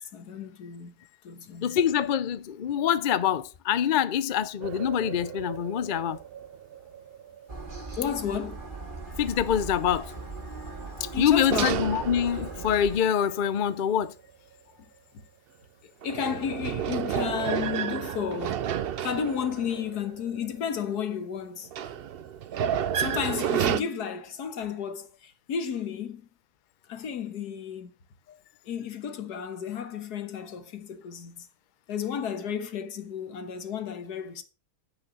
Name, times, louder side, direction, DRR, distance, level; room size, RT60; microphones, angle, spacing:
voice 1, 0.1-0.9 1.2-1.8 7.9-8.6 10.6-10.8 11.1-11.8 15.1-15.2 16.0-18.7 19.0-21.7 23.0-26.2 26.9-27.9 28.7-31.5 31.9-34.4, left 7 dB, 85° left, 1.8 m, -32 dB
voice 2, 1.6-6.2 9.2-10.1 11.0-14.1, left 9 dB, 55° left, 0.5 m, -25 dB
sound 1, 4.6-8.1 8.6-8.7 11.5-13.8 16.0-20.9 21.6-23.8, right 9 dB, 65° right, 0.5 m, -32 dB
sound 2, 7.5-13.0, right 3 dB, 35° right, 2.0 m, -39 dB
8.9 x 6.3 x 6.1 m
omnidirectional pair, 1.6 m